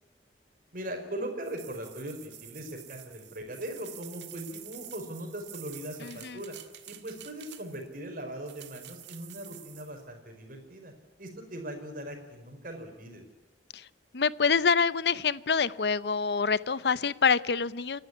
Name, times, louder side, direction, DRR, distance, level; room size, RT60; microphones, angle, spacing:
voice 1, 0.7-6.5 6.8-10.9 11.2-13.2, right 1 dB, 50° right, 4.9 m, -40 dB
sound 1, 1.4-7.9 8.5-10.0, right 13 dB, 80° right, 1.7 m, -48 dB
voice 2, 6.0-6.4 13.7-13.9 14.1-18.0, left 5 dB, 65° left, 0.7 m, -26 dB
29.0 x 12.0 x 9.9 m
head